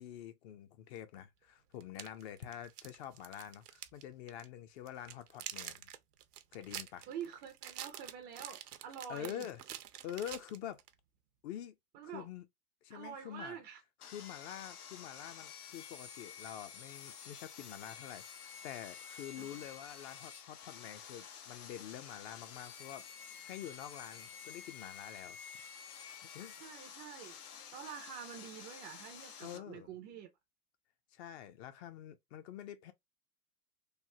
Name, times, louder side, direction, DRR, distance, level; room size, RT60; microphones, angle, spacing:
voice 1, 0.0-5.9 6.5-7.1 9.1-9.6 10.0-10.8 11.4-11.7 12.0-12.4 12.8-13.6 14.0-25.4 26.2-26.5 29.4-29.9 31.1-32.9, left 10 dB, 45° left, 0.6 m, -47 dB
sound 1, 1.8-4.0 4.3-4.5 4.9-10.9, right 11 dB, 85° right, 0.6 m, -47 dB
voice 2, 7.1-9.5 11.9-12.3 12.9-13.8 19.4-19.6 26.5-27.4 27.7-30.3, right 8 dB, 25° right, 0.3 m, -47 dB
Sawing, 14.0-29.6, left 7 dB, 80° left, 0.8 m, -50 dB
3.3 x 2.1 x 2.7 m
hypercardioid pair, 110°, 45 cm